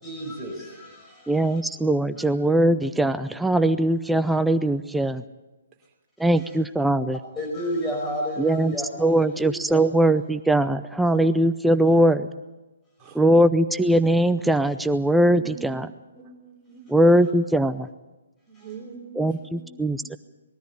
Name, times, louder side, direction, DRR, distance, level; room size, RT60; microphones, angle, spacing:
voice 1, 0.0-1.6 2.2-2.3 6.4-6.6 7.1-9.9 13.0-13.1 18.6-18.7, equal, 15° left, 0 dB, 5.2 m, -32 dB
voice 2, 1.3-5.2 6.2-7.2 8.4-8.7 9.0-12.3 13.2-15.9 16.9-17.9 19.2-20.2, right 1 dB, 5° right, 12 dB, 0.6 m, -21 dB
voice 3, 13.0-13.4 15.3-15.6 16.1-16.9 18.5-20.2, right 6 dB, 20° right, -1 dB, 3.9 m, -44 dB
21.0 x 13.5 x 9.7 m, 1.1 s
figure-of-eight pair, 135°, 0 cm